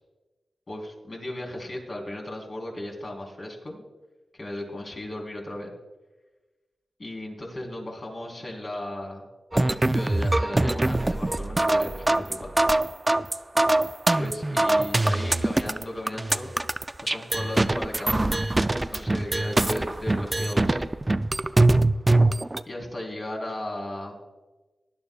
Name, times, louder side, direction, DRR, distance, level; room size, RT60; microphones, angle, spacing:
voice 1, 0.7-3.8 4.3-5.7 7.0-9.2 9.5-12.5 14.2-16.5 17.0-18.6 18.9-20.9 22.6-24.2, left 1 dB, 45° left, -1 dB, 3.5 m, -36 dB
sound 1, 9.5-22.6, right 2 dB, 20° right, 0.4 m, -23 dB
18.5 x 11.0 x 2.3 m, 1.2 s
wide cardioid pair, 95°, 0 cm